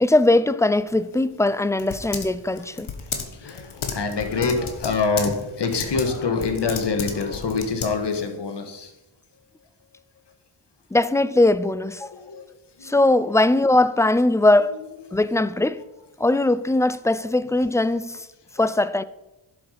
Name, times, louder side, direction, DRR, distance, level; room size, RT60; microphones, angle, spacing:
voice 1, 0.0-2.9 10.9-12.1 12.8-14.7 15.1-15.8 16.2-18.3 18.6-19.0, left 2 dB, 5° left, 0.3 m, -20 dB
Typing, 0.9-8.3, left 6 dB, 85° left, 1.5 m, -34 dB
voice 2, 3.9-8.9 12.0-12.4 12.8-12.9, left 4 dB, 55° left, 1.6 m, -25 dB
11.5 x 7.2 x 5.0 m
wide cardioid pair, 100°, 48 cm